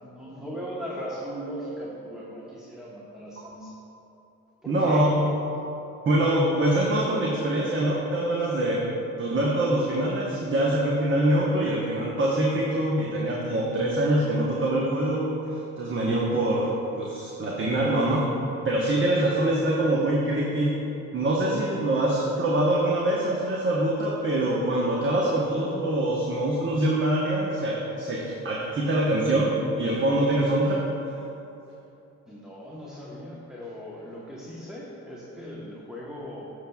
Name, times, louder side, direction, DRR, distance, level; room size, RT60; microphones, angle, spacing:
voice 1, 0.0-3.7 4.6-5.1 32.3-36.4, equal, ahead, -6 dB, 1.1 m, -38 dB
voice 2, 4.7-5.2 6.1-8.8 9.2-18.3 18.6-20.8 21.1-30.8, right 1 dB, 40° right, -4 dB, 1.1 m, -24 dB
12.5 x 6.7 x 2.3 m, 2.9 s
cardioid pair, 90°, 30 cm